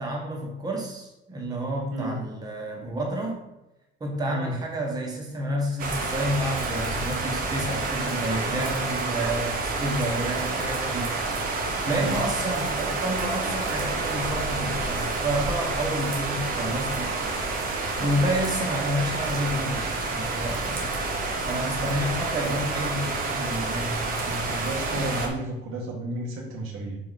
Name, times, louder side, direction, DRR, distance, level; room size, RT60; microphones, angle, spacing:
voice 1, 0.0-3.4 4.0-11.1 11.8-17.2 18.0-20.9 21.5-25.1, right 1 dB, 20° right, -1 dB, 1.3 m, -30 dB
sound 1, 5.8-25.3, right 3 dB, 40° right, 1.1 m, -29 dB
voice 2, 24.6-27.0, right 2 dB, 90° right, -1 dB, 1.6 m, -32 dB
6.0 x 4.8 x 4.1 m, 0.93 s
cardioid pair, 180°, 21 cm